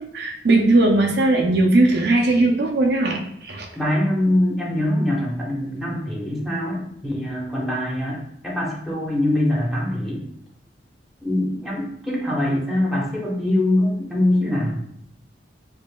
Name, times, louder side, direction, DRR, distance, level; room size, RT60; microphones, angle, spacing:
voice 1, 0.0-3.7, right 2 dB, 65° right, 1 dB, 0.5 m, -18 dB
voice 2, 3.7-10.2 11.2-14.8, left 1 dB, ahead, -4 dB, 1.0 m, -23 dB
4.9 x 2.7 x 2.2 m, 0.72 s
head